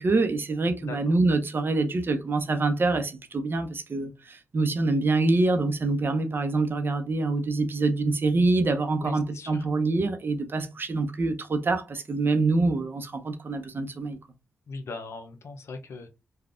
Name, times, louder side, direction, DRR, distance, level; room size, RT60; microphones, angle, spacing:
voice 1, 0.0-14.2, right 3 dB, 50° right, 0.7 m, -25 dB
voice 2, 9.0-9.7 14.7-16.1, left 3 dB, 70° left, 0.6 m, -39 dB
3.4 x 2.3 x 2.4 m
cardioid pair, 50°, 5 cm